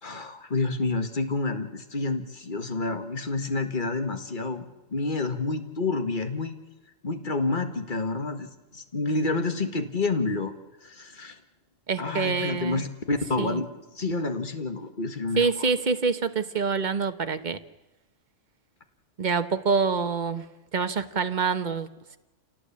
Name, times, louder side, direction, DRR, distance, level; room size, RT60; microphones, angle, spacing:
voice 1, 0.0-4.7 4.9-6.6 7.0-10.5 10.8-11.4 12.0-15.7, left 3 dB, 40° left, 7 dB, 1.9 m, -29 dB
voice 2, 11.9-12.8 13.4-13.6 15.4-17.6 19.2-20.5 20.7-21.9, right 5 dB, 35° right, 9 dB, 1.2 m, -26 dB
28.0 x 18.0 x 8.6 m, 1.1 s
omnidirectional pair, 1.4 m